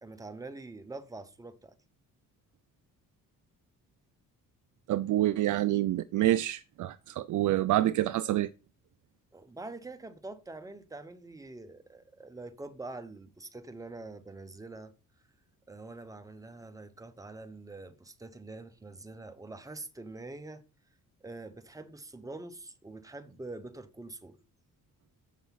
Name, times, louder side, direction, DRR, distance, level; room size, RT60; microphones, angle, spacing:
voice 1, 0.0-1.7 9.3-14.9 15.7-20.6 21.2-24.4, right 2 dB, 10° right, 0.9 m, -45 dB
voice 2, 4.9-8.5, right 14 dB, 60° right, 0.5 m, -27 dB
8.1 x 6.3 x 5.7 m
cardioid pair, 165°, 33 cm